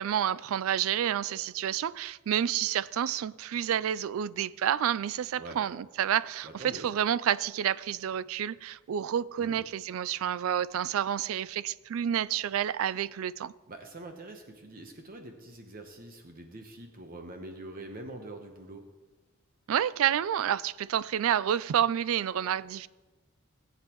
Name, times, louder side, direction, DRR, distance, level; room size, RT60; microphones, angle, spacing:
voice 1, 0.0-13.5 19.7-22.9, right 9 dB, 70° right, 0.3 m, -29 dB
voice 2, 6.4-6.9 9.4-9.6 13.7-18.8, right 2 dB, 40° right, 0.9 m, -44 dB
18.5 x 8.2 x 3.0 m
head